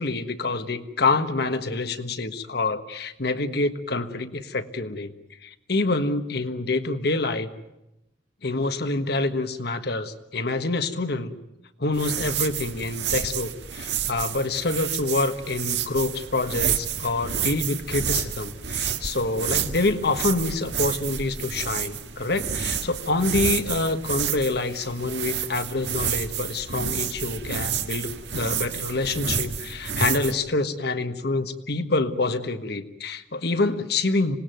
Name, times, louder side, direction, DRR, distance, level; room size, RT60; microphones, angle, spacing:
voice 1, 0.0-5.1 5.4-7.5 8.4-11.4 11.8-34.4, left 3 dB, 65° left, 9 dB, 1.5 m, -26 dB
sound 1, 11.9-30.3, right 8 dB, 75° right, 1.6 m, -30 dB
26.0 x 19.0 x 9.3 m, 0.91 s
head